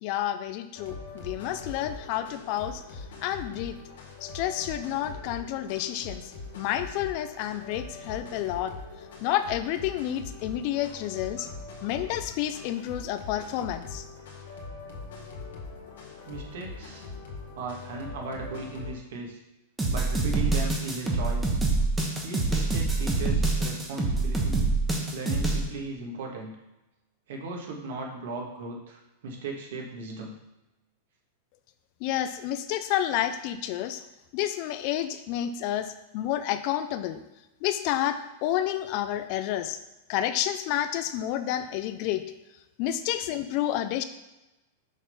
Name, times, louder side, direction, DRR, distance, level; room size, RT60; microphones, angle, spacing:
voice 1, 0.0-3.8 4.2-8.7 9.2-11.5 11.8-14.1 32.0-34.0 34.3-37.2 37.6-39.8 40.1-42.2 42.8-44.0, left 12 dB, 45° left, 11 dB, 0.5 m, -30 dB
sound 1, 0.7-18.9, left 3 dB, 90° left, 1.9 m, -42 dB
voice 2, 16.3-17.1 17.6-19.4 19.9-21.6 22.2-24.7 25.1-26.5 27.3-30.3 43.0-43.1, right 3 dB, 75° right, 0 dB, 1.7 m, -37 dB
sound 2, 19.8-25.6, right 3 dB, 10° right, 1.1 m, -25 dB
6.2 x 3.8 x 5.5 m, 1.0 s
supercardioid pair, 155°, 0 cm